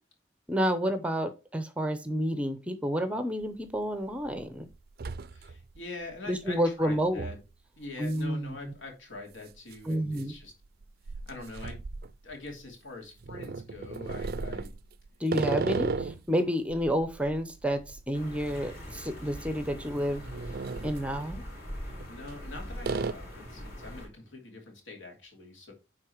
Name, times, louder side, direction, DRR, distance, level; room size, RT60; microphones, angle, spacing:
voice 1, 0.5-4.7 6.3-7.3 8.0-8.7 9.8-10.3 15.2-20.2 20.8-21.4, equal, 5° right, 0.7 m, -30 dB
sound 1, 3.4-3.5 4.0-4.4 4.7-5.8 6.1-6.2 7.2-7.4 8.1-8.2 8.5-8.6 9.6-12.7 13.2-16.3 16.7-19.1 19.3-19.5 20.0-21.0 21.9-22.5 22.8-23.1, right 4 dB, 50° right, 0.4 m, -35 dB
voice 2, 5.3-7.4 7.8-10.5 11.3-11.8 12.2-14.7 15.5-15.8 21.8-25.7, left 3 dB, 75° left, 2.7 m, -44 dB
sound 2, 18.1-24.1, equal, 45° left, 4.7 m, -42 dB
9.8 x 3.8 x 4.5 m
head